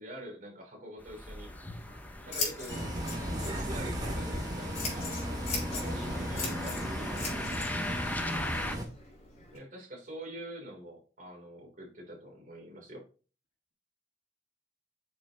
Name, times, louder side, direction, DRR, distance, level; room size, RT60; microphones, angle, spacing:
voice 1, 0.0-1.5 2.2-2.8 3.3-7.9 9.5-13.0, right 1 dB, 50° right, 0 dB, 3.2 m, -46 dB
sound 1, 1.0-8.8, left 1 dB, 10° left, 0.8 m, -39 dB
Scissors, 1.4-9.6, left 4 dB, 40° left, 3.5 m, -41 dB
Bus, 2.7-8.8, equal, 25° right, 2.1 m, -35 dB
voice 2, 5.7-6.7 8.2-8.8, left 2 dB, 75° left, 3 dB, 1.9 m, -48 dB
8.4 x 6.3 x 2.9 m, 0.37 s
head